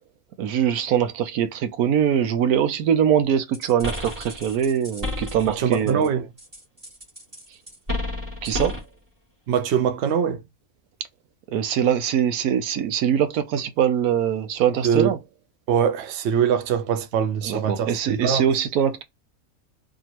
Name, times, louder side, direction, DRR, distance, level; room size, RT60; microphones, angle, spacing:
voice 1, 0.4-6.1 8.4-8.8 11.5-15.2 17.4-19.0, right 9 dB, 80° right, 1.1 m, -22 dB
sound 1, 3.5-6.1 6.4-8.9, left 1 dB, 25° right, 2.6 m, -32 dB
voice 2, 5.5-6.3 9.5-10.4 14.8-15.1 15.7-18.4, right 7 dB, 55° right, 0.9 m, -23 dB
4.5 x 2.8 x 2.9 m
omnidirectional pair, 1.6 m